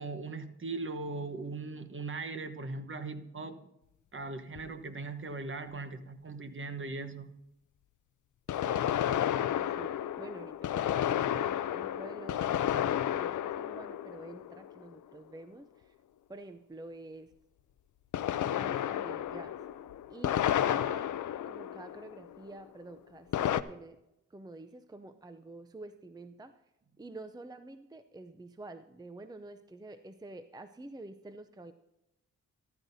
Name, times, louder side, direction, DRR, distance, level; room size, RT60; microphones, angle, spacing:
voice 1, 0.0-3.6 4.1-7.3, right 3 dB, 45° right, 8 dB, 1.2 m, -39 dB
Maxim Russian machinegun distant, 4.6-4.7 8.5-15.0 18.1-22.4 23.3-23.6, left 11 dB, 80° left, 0.6 m, -32 dB
voice 2, 8.6-15.9 16.3-17.3 18.4-19.6 20.1-21.1 21.5-24.0 24.3-26.5 27.0-31.7, right 2 dB, 15° right, 9 dB, 0.6 m, -48 dB
14.0 x 13.0 x 2.7 m, 0.88 s
cardioid pair, 95°, 30 cm